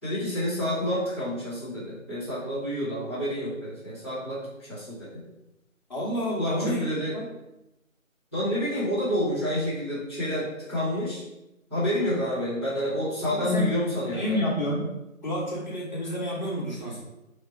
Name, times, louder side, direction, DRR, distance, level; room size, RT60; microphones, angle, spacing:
voice 1, 0.0-5.2 6.4-7.1 8.3-11.2 11.7-14.4, left 1 dB, 10° right, -18 dB, 0.9 m, -29 dB
voice 2, 5.9-6.8 7.1-7.3 13.2-13.7 14.1-14.8 15.2-17.0, equal, 35° left, -5 dB, 1.1 m, -29 dB
3.3 x 2.9 x 4.3 m, 0.94 s
figure-of-eight pair, 155°, 41 cm